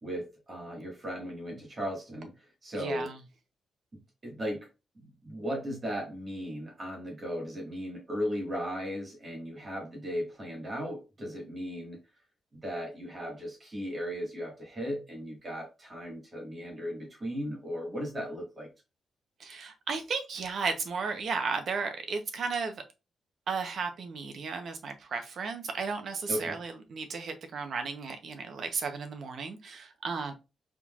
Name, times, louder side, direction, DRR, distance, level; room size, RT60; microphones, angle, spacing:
voice 1, 0.0-3.1 3.9-4.7 4.9-12.0 12.5-18.7 26.3-26.6, equal, 30° right, 1.8 m, -37 dB
voice 2, 2.7-3.2 19.4-22.8 23.5-30.3, right 5 dB, 60° right, 0.9 m, -34 dB
4.4 x 3.7 x 2.4 m
wide cardioid pair, 150°, 0 cm